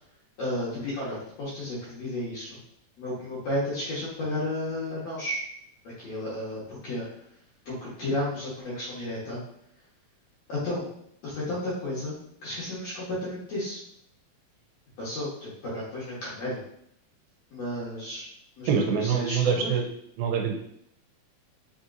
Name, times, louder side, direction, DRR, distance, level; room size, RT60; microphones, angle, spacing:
voice 1, 0.4-2.6 3.0-5.4 5.8-7.0 7.6-9.4 10.5-10.8 11.2-12.2 12.4-13.8 15.0-16.6 17.5-18.3 18.6-19.7, left 1 dB, 65° left, -8 dB, 1.8 m, -32 dB
voice 2, 18.7-19.9 20.2-20.6, right 6 dB, 80° right, 2 dB, 2.4 m, -25 dB
5.7 x 2.8 x 2.5 m, 0.71 s
omnidirectional pair, 4.3 m